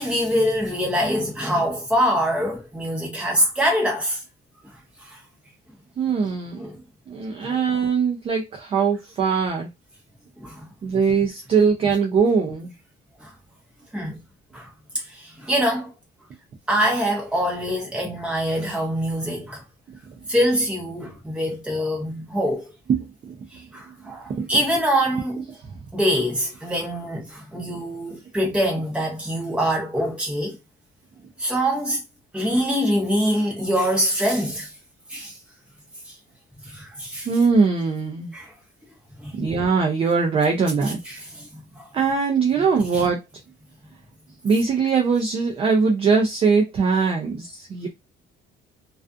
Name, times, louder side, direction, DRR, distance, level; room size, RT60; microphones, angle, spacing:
voice 1, 0.0-4.2 5.0-5.2 6.6-6.7 7.4-7.5 10.4-10.7 13.2-13.3 13.9-14.2 14.5-14.7 14.9-15.9 16.7-19.6 20.3-22.6 23.5-25.4 25.9-30.6 31.4-32.0 32.3-34.7 35.1-35.4 36.1-36.2 36.6-37.3 38.3-38.5 39.2-39.3 41.1-41.5 41.7-41.9 42.9-43.0, equal, 5° right, 0.8 m, -24 dB
voice 2, 6.0-6.6 7.1-9.7 10.8-12.7 23.0-23.4 24.0-24.5 25.6-25.7 37.3-38.3 39.3-41.0 41.9-43.2 44.4-47.9, right 5 dB, 25° right, 0.4 m, -21 dB
2.3 x 2.3 x 2.5 m
cardioid pair, 180°, 21 cm